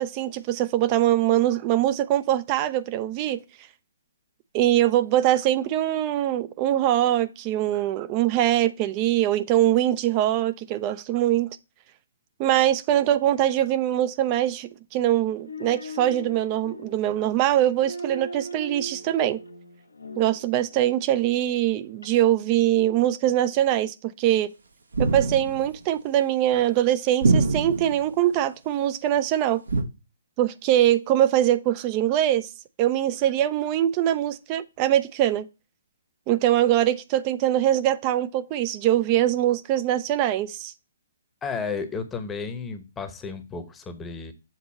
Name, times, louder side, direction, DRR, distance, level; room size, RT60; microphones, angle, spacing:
voice 1, 0.0-3.4 4.5-11.6 12.4-19.4 20.2-24.5 25.0-29.6 30.4-32.5 32.8-35.5 36.3-40.7, right 12 dB, 30° right, 0.5 m, -23 dB
sound 1, 15.3-21.0 22.0-22.1, right 1 dB, 75° left, 0.9 m, -39 dB
sound 2, 24.9-25.7 27.2-28.0 29.7-29.8, right 3 dB, 75° right, 1.1 m, -23 dB
voice 2, 41.4-44.3, left 5 dB, 15° left, 0.9 m, -33 dB
7.3 x 3.9 x 4.2 m
figure-of-eight pair, 130°, 0 cm